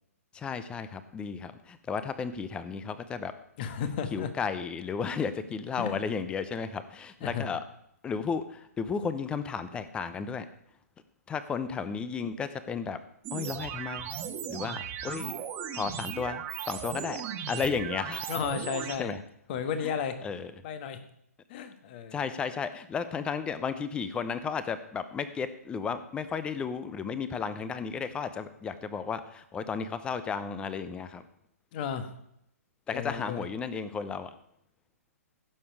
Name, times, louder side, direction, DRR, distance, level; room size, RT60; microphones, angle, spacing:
voice 1, 0.3-3.3 4.1-7.6 8.0-10.5 11.3-13.0 13.3-14.2 14.5-15.4 15.7-18.3 19.0-19.2 19.8-19.9 20.2-20.5 22.1-31.2 32.9-34.3, left 6 dB, 10° left, 13 dB, 0.7 m, -33 dB
voice 2, 3.6-4.3 5.8-6.0 7.2-7.5 18.3-19.1 19.5-20.2 20.6-21.0 21.5-22.2 31.7-32.1 32.9-33.4, left 7 dB, 40° left, 9 dB, 1.4 m, -33 dB
sound 1, 13.2-19.0, right 9 dB, 25° right, 1.3 m, -37 dB
16.0 x 7.0 x 4.7 m, 0.75 s
figure-of-eight pair, 135°, 9 cm